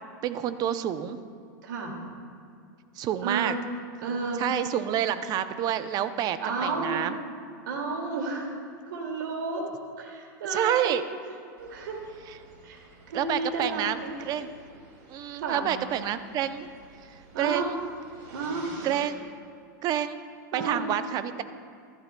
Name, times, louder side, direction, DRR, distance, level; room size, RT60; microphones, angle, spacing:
voice 1, 0.2-1.2 3.0-3.5 4.4-7.2 10.5-11.0 13.1-14.5 15.1-16.7 17.4-17.8 18.8-19.3 19.8-20.2 20.5-21.4, right 10 dB, 40° right, 11 dB, 0.6 m, -28 dB
voice 2, 1.6-1.9 3.2-3.6 4.0-4.5 6.4-7.0 7.6-8.5 8.9-9.7 10.0-11.0 11.6-12.1 12.6-14.1 15.4-15.7 17.3-17.7 18.3-18.7 20.5-20.9, right 3 dB, 80° right, 1 dB, 2.3 m, -32 dB
sound 1, 11.6-19.0, right 3 dB, 55° right, 2.3 m, -51 dB
14.5 x 11.5 x 2.2 m, 2.4 s
hypercardioid pair, 120°, 11 cm